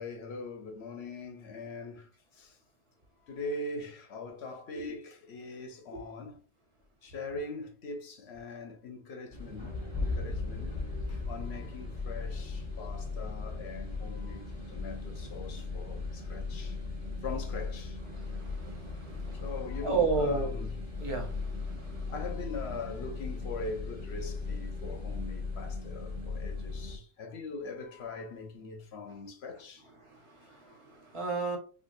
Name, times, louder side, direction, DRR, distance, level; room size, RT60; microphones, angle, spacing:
voice 1, 0.0-2.1 2.4-2.6 3.3-6.4 7.0-10.7 11.1-16.8 17.2-18.0 19.4-20.7 22.1-29.8, left 3 dB, 75° left, 1.1 m, -41 dB
sound 1, 9.3-27.0, left 3 dB, 5° left, 1.5 m, -37 dB
voice 2, 18.1-19.5 19.8-20.6 20.9-22.1 30.0-31.6, right 4 dB, 30° right, 1.2 m, -34 dB
5.0 x 2.3 x 2.6 m
omnidirectional pair, 1.1 m